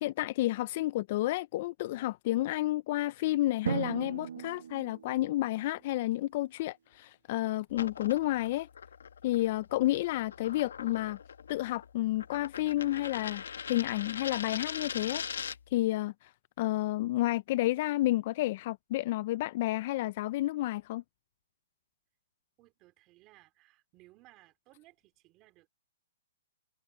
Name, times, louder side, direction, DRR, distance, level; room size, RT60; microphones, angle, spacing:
voice 1, 0.0-8.7 9.2-11.2 11.5-16.3 16.6-21.0, left 16 dB, 35° left, 0.3 m, -31 dB
Drum, 3.7-6.2, right 7 dB, 80° right, 1.4 m, -37 dB
sound 1, 7.7-15.8, left 7 dB, 85° left, 1.1 m, -41 dB
voice 2, 22.6-25.7, right 19 dB, 25° right, 4.3 m, -61 dB
hypercardioid pair, 165°, 0 cm